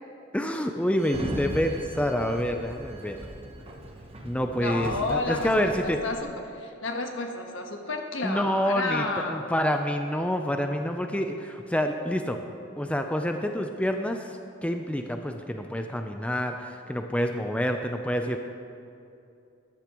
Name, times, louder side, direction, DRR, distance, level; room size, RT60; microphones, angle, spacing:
voice 1, 0.3-3.2 4.2-6.0 8.2-12.4 12.8-18.4, equal, 5° left, 5 dB, 0.4 m, -27 dB
Sliding door, 1.0-6.2, right 1 dB, 30° right, 1.0 m, -38 dB
voice 2, 4.6-9.4, left 2 dB, 75° left, 3 dB, 1.3 m, -31 dB
14.0 x 12.0 x 3.0 m, 2.6 s
head